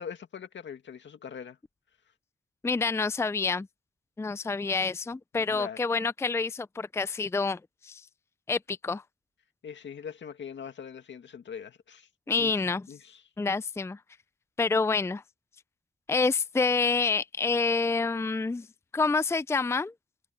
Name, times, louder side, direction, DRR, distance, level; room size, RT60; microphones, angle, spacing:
voice 1, 0.0-1.6 5.3-5.8 9.6-12.1 12.4-12.6 12.9-13.2, left 7 dB, 80° left, 2.1 m, -42 dB
voice 2, 2.6-3.7 4.2-8.1 8.5-9.0 12.3-12.9 13.4-14.0 14.6-15.2 16.1-18.7 18.9-19.9, left 4 dB, 15° left, 0.4 m, -27 dB
cardioid pair, 60°, 19 cm